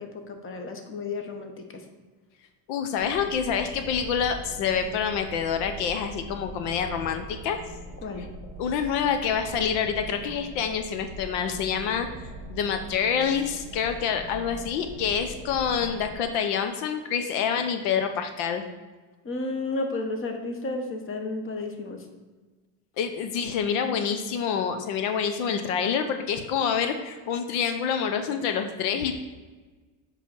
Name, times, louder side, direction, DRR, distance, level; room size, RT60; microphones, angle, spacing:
voice 1, 0.0-1.6 8.0-8.3 19.2-22.0, left 2 dB, 30° left, 4 dB, 1.0 m, -32 dB
voice 2, 2.7-7.6 8.2-8.3 8.6-12.1 12.5-18.6 23.0-29.2, left 7 dB, 80° left, 7 dB, 0.8 m, -27 dB
sound 1, 2.9-16.2, right 1 dB, 15° right, 1.3 m, -42 dB
7.5 x 3.3 x 5.4 m, 1.3 s
cardioid pair, 115°, 43 cm